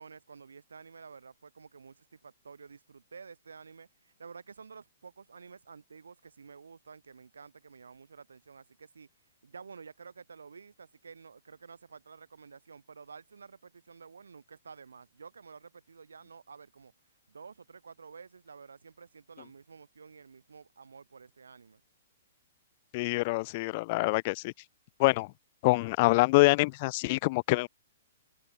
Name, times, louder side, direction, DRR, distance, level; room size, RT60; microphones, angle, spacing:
voice 1, 0.0-9.1 9.4-16.9 17.3-21.8, right 5 dB, 70° right, 3.1 m, -51 dB
voice 2, 22.9-24.5 25.0-25.3 25.6-27.7, left 23 dB, 40° left, 0.5 m, -25 dB
figure-of-eight pair, 115°, 0 cm